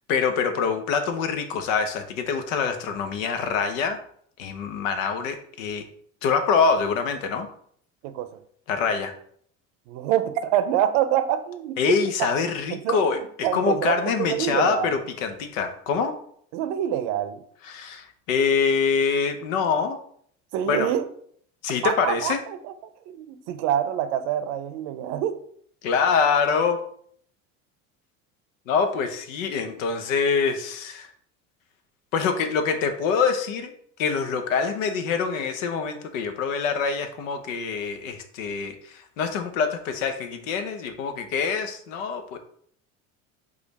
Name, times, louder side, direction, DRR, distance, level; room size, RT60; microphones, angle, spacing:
voice 1, 0.1-4.0 4.4-5.8 6.2-7.5 8.7-9.1 11.8-16.2 17.6-20.0 20.7-20.9 21.6-22.4 25.8-26.8 28.7-31.1 32.1-33.7 34.0-42.4, left 5 dB, 85° left, 7 dB, 0.8 m, -25 dB
voice 2, 9.9-11.8 12.4-12.5 12.8-15.0 16.5-17.4 20.5-21.0 21.8-22.7 23.1-25.4, right 10 dB, 75° right, 11 dB, 0.6 m, -26 dB
5.0 x 2.5 x 4.0 m, 0.62 s
supercardioid pair, 95°, 38 cm